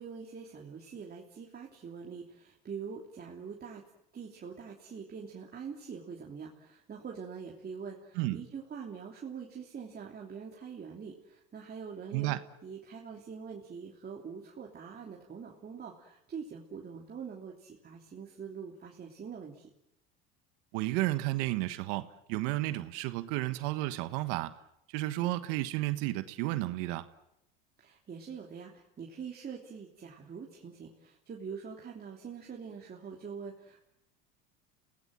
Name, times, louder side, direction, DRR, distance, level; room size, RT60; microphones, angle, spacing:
voice 1, 0.0-3.8 4.1-12.4 12.6-19.7 27.8-33.8, right 6 dB, 30° right, -1 dB, 3.1 m, -44 dB
voice 2, 20.7-24.5 24.9-27.1, right 17 dB, 70° right, 12 dB, 1.4 m, -32 dB
29.5 x 18.0 x 7.8 m, 0.82 s
hypercardioid pair, 90°, 30 cm